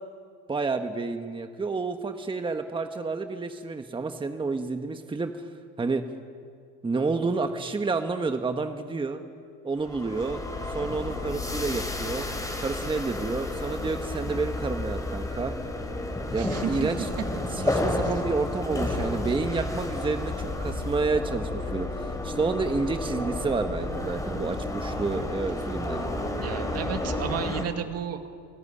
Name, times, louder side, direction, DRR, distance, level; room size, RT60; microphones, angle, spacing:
voice 1, 0.5-5.4 5.8-6.0 6.8-9.2 9.6-10.4 10.7-12.3 12.6-15.5 16.3-17.1 17.5-26.1, right 3 dB, 15° right, 7 dB, 1.3 m, -29 dB
sound 1, 9.8-27.6, left 2 dB, 10° left, 3.6 m, -31 dB
voice 2, 16.4-16.9 17.6-17.8 25.0-25.3 26.4-28.3, right 8 dB, 50° right, 7 dB, 2.1 m, -33 dB
28.5 x 16.5 x 10.0 m, 2.3 s
supercardioid pair, 105°, 32 cm